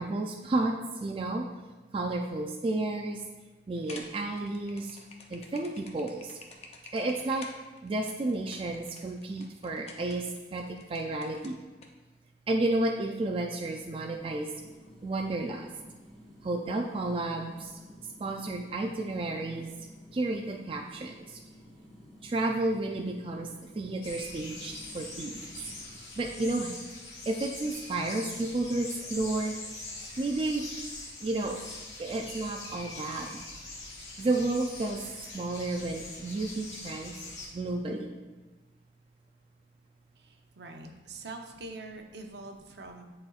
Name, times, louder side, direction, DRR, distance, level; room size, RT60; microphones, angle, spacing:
voice 1, 0.0-1.5 1.9-3.2 3.7-5.0 5.3-6.4 6.9-7.5 7.8-11.6 12.5-14.5 15.0-15.7 16.4-17.8 18.2-19.8 20.1-21.4 22.2-25.7 26.2-26.7 27.3-29.6 30.2-30.6 31.2-31.6 32.0-33.3 34.2-35.0 35.3-37.1 37.5-38.2, right 2 dB, 30° right, 2 dB, 0.3 m, -32 dB
sound 1, 3.7-11.9, left 3 dB, 35° left, 0.6 m, -49 dB
sound 2, 13.9-26.0, equal, ahead, 1.7 m, -53 dB
sound 3, 24.0-37.5, left 2 dB, 80° left, 1.8 m, -43 dB
voice 2, 40.2-43.0, right 2 dB, 70° right, 3 dB, 0.7 m, -44 dB
10.0 x 4.3 x 2.4 m, 1.2 s
head